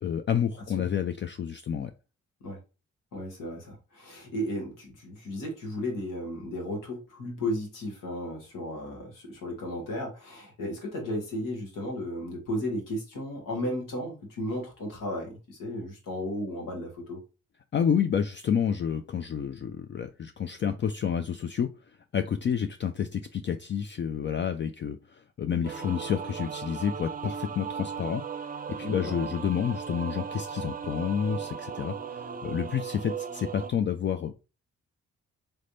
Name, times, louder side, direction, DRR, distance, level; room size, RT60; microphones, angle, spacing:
voice 1, 0.0-1.9 17.7-21.7 22.1-28.2 28.7-34.3, left 8 dB, 35° left, 7 dB, 0.4 m, -29 dB
voice 2, 3.1-17.2 28.8-29.1, left 1 dB, 85° left, 0 dB, 1.4 m, -34 dB
sound 1, 25.6-33.7, right 7 dB, 30° right, 0.5 m, -37 dB
3.3 x 3.2 x 2.6 m, 0.31 s
supercardioid pair, 45°, 32 cm